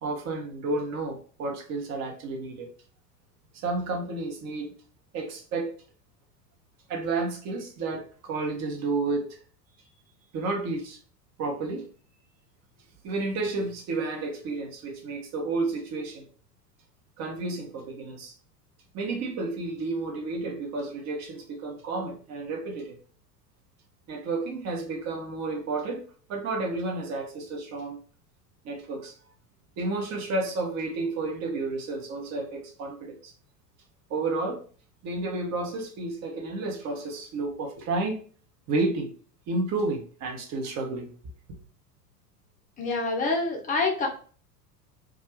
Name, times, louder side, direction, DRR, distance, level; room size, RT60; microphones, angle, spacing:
voice 1, 0.0-2.7 3.6-4.7 5.1-5.7 6.9-9.4 10.3-11.0 11.4-11.9 13.0-16.2 17.2-18.3 18.9-23.0 24.1-26.0 26.3-28.0 28.6-29.1 29.8-33.3 34.1-34.6 35.0-38.2 38.7-39.1 39.5-41.1, right 3 dB, 35° right, 0.8 m, -31 dB
voice 2, 42.8-44.1, left 3 dB, 15° left, 0.6 m, -26 dB
2.4 x 2.3 x 2.9 m
figure-of-eight pair, 85°, 49 cm